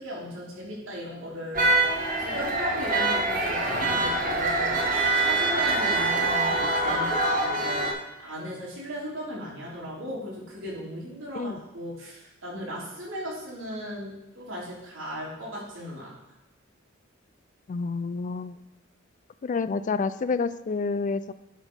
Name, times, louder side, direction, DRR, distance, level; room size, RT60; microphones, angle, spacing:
voice 1, 0.0-1.7 2.2-16.2, equal, 80° right, -6 dB, 3.3 m, -37 dB
sound 1, 1.5-7.9, right 2 dB, 45° right, 1.3 m, -24 dB
voice 2, 17.7-18.6 19.4-21.3, left 4 dB, 40° left, 14 dB, 0.4 m, -28 dB
10.5 x 4.2 x 5.3 m, 1.0 s
head